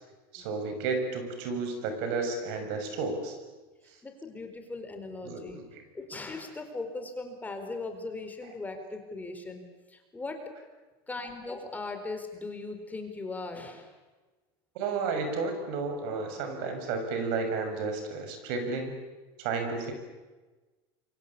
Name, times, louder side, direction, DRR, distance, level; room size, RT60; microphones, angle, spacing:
voice 1, 0.3-3.4 5.2-5.8 14.7-18.9 19.4-19.9, right 4 dB, 75° right, 6 dB, 6.6 m, -32 dB
voice 2, 4.0-5.6 5.9-10.4 11.1-13.9, left 3 dB, 15° left, 5 dB, 4.5 m, -39 dB
27.5 x 24.0 x 8.7 m, 1.2 s
supercardioid pair, 120°, 13 cm